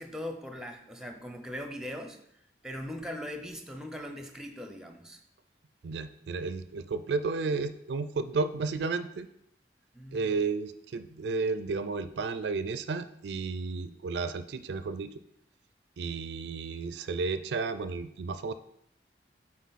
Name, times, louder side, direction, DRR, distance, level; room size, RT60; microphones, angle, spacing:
voice 1, 0.0-2.2 2.6-5.2 9.9-10.3, left 1 dB, 5° right, 5 dB, 0.7 m, -40 dB
voice 2, 5.8-9.3 10.1-15.1 16.0-18.5, right 4 dB, 70° right, 12 dB, 0.4 m, -32 dB
8.3 x 4.3 x 4.1 m, 0.73 s
head